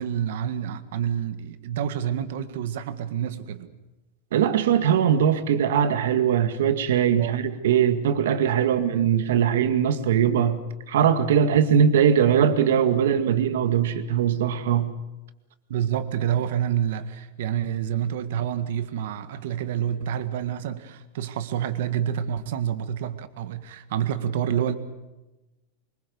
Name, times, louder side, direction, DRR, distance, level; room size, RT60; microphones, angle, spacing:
voice 1, 0.0-3.7 7.2-7.3 8.5-9.0 15.7-24.8, right 9 dB, 65° right, 1.8 m, -28 dB
voice 2, 4.3-10.6 10.9-14.9, right 8 dB, 90° right, 2.1 m, -21 dB
24.5 x 22.0 x 7.1 m
supercardioid pair, 165°, 0 cm